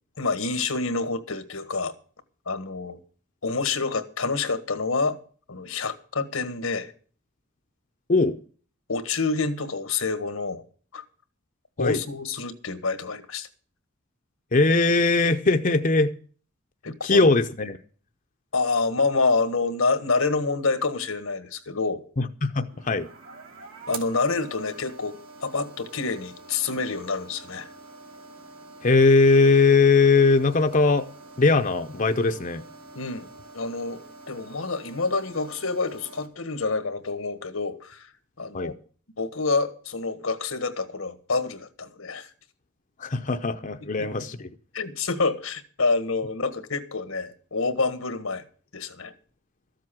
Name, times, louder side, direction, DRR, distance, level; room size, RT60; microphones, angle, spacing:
voice 1, 0.2-1.9 2.5-3.0 3.4-5.2 5.5-6.9 8.9-10.6 10.9-11.0 11.8-13.5 16.8-17.3 18.5-22.0 23.9-27.7 32.9-33.3 33.5-38.1 38.4-38.7 39.2-42.3 43.8-44.3 44.7-48.4 48.7-49.1, left 4 dB, 85° left, 1.5 m, -27 dB
voice 2, 14.5-16.1 17.0-17.8 22.2-23.1 28.8-31.1 31.4-32.6 38.5-38.7 43.0-44.5, left 3 dB, 40° left, 0.7 m, -20 dB
sound 1, 22.7-36.3, right 3 dB, 80° right, 2.7 m, -46 dB
14.0 x 7.6 x 7.4 m
head